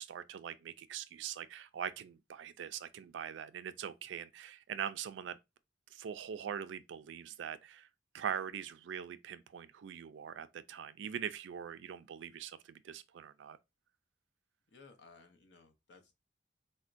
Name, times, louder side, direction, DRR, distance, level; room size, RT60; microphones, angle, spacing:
voice 1, 0.0-5.4 5.9-7.9 8.1-13.6, right 8 dB, 75° right, 0.3 m, -42 dB
voice 2, 14.7-16.1, left 4 dB, 70° left, 0.8 m, -59 dB
4.2 x 2.2 x 2.5 m
head